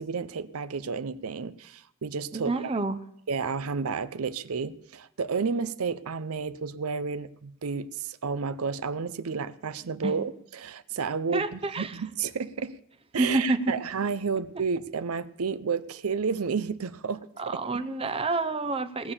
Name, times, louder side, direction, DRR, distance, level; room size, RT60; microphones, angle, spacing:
voice 1, 0.0-2.7 3.3-12.8 13.1-17.8, right 5 dB, 80° right, 14 dB, 0.6 m, -31 dB
voice 2, 2.3-3.0 10.0-10.1 11.3-12.0 13.2-13.8 17.4-19.1, right 2 dB, 25° right, 10 dB, 0.6 m, -28 dB
18.5 x 6.9 x 7.1 m, 0.75 s
head